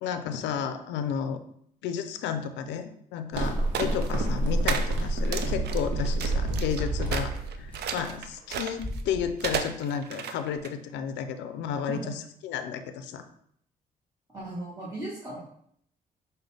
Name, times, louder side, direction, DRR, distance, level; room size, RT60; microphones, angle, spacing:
voice 1, 0.0-1.4 1.8-13.2, left 7 dB, 75° left, 9 dB, 0.4 m, -32 dB
sound 1, 3.3-8.4, right 2 dB, 80° right, 0.8 m, -29 dB
sound 2, 3.7-4.1 4.7-5.0 5.3-5.9 6.2-6.8 7.1-9.0 9.4-10.7, right 7 dB, 65° right, 0.4 m, -32 dB
sound 3, 3.9-4.0 4.5-4.6 5.5-5.6 5.8-7.3 7.7-7.8 8.6-9.3 9.9-10.0 10.6-10.7, left 1 dB, 5° left, 0.7 m, -36 dB
voice 2, 14.3-15.4, right 2 dB, 15° right, -7 dB, 1.2 m, -36 dB
5.1 x 2.2 x 3.3 m, 0.67 s
supercardioid pair, 50°, 18 cm